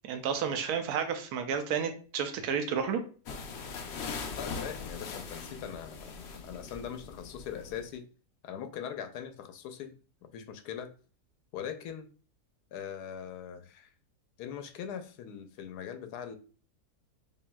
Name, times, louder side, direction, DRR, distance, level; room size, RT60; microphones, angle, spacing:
voice 1, 0.0-3.0, right 7 dB, 80° right, 1.1 m, -31 dB
sound 1, 3.3-7.9, left 5 dB, 60° left, 0.7 m, -41 dB
voice 2, 4.3-8.1 8.4-10.0 10.2-10.9 11.5-12.1 12.7-13.9 14.4-16.4, left 8 dB, 85° left, 1.1 m, -41 dB
5.2 x 2.7 x 2.2 m
omnidirectional pair, 1.7 m